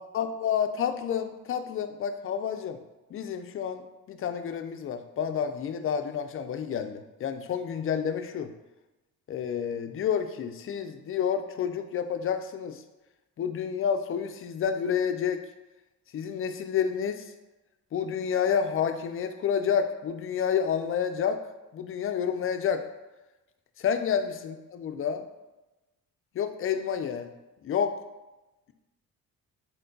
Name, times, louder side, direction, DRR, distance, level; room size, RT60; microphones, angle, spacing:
voice 1, 0.0-2.8 3.1-8.5 9.3-12.8 13.4-15.4 16.1-17.2 17.9-21.4 21.7-22.8 23.8-25.3 26.4-27.3 27.6-27.9, left 7 dB, 45° left, 8 dB, 0.4 m, -29 dB
4.4 x 2.2 x 3.8 m, 1.0 s
cardioid pair, 90°, 30 cm